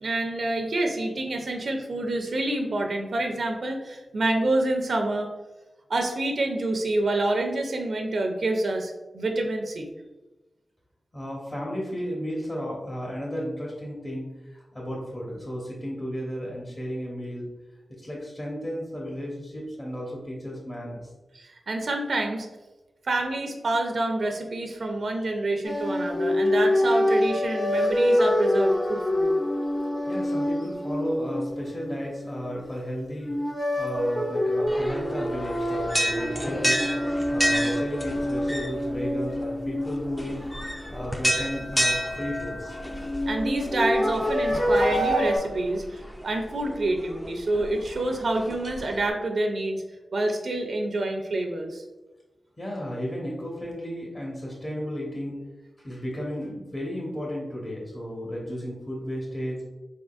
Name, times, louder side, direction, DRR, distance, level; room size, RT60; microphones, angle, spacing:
voice 1, 0.0-5.3 5.9-9.9 21.3-22.5 23.0-29.4 43.2-49.8 50.1-51.8, right 2 dB, 70° right, 4 dB, 0.5 m, -27 dB
voice 2, 11.1-17.5 18.0-21.1 30.1-33.3 33.8-40.4 40.9-42.7 52.6-55.3 55.8-59.6, equal, 35° left, -4 dB, 1.0 m, -33 dB
sound 1, 25.6-32.7 33.2-41.0 42.7-45.4, left 1 dB, 60° left, 1.3 m, -26 dB
sound 2, 34.7-49.1, equal, 5° left, 0.4 m, -31 dB
3.7 x 3.6 x 2.4 m, 1.1 s
cardioid pair, 60°, 0 cm